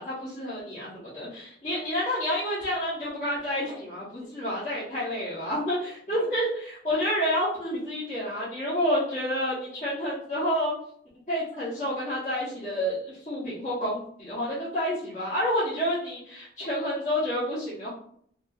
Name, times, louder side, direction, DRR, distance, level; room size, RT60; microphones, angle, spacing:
voice 1, 0.0-10.7 11.3-13.0 13.2-17.9, equal, 45° left, -12 dB, 1.0 m, -29 dB
2.7 x 2.7 x 2.3 m, 0.64 s
head